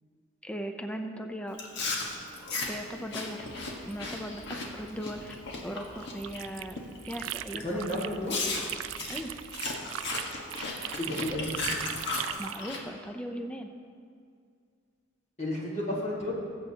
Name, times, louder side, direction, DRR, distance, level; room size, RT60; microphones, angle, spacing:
voice 1, 0.4-1.6 2.7-3.5 3.9-5.4 5.6-6.8 7.0-7.6 7.9-8.0 9.1-9.3 12.4-13.7, equal, 5° left, 5 dB, 0.5 m, -38 dB
Chewing mastication, 1.5-6.4 6.8-7.1 7.6-7.7 8.3-12.8, left 3 dB, 60° left, 1.4 m, -35 dB
sound 1, 3.4-9.4, equal, 80° left, 1.8 m, -53 dB
sound 2, 6.0-8.2 8.5-12.7, right 13 dB, 75° right, 0.3 m, -38 dB
voice 2, 7.6-8.4 11.0-11.6 15.4-16.3, left 1 dB, 35° left, -5 dB, 1.8 m, -32 dB
21.0 x 7.8 x 2.9 m, 2.2 s
head